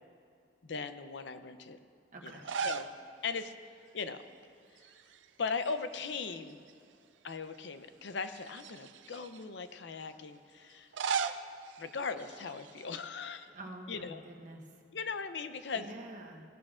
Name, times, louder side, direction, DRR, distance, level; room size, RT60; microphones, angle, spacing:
voice 1, 0.6-1.8 2.2-2.4 2.6-2.9 3.2-3.5 3.9-4.2 5.4-6.6 7.2-10.9 11.8-13.5 13.9-14.2 14.9-15.9, left 5 dB, 75° left, 10 dB, 0.6 m, -38 dB
voice 2, 2.1-2.4 13.5-14.6 15.7-16.4, right 1 dB, 45° right, 1 dB, 1.2 m, -47 dB
sound 1, 2.3-3.0 3.3-3.4 4.8-5.3 5.6-6.7 7.3-7.4 8.3-9.4 10.7-12.9, right 6 dB, 90° right, 0.5 m, -38 dB
17.5 x 12.5 x 2.5 m, 2.4 s
head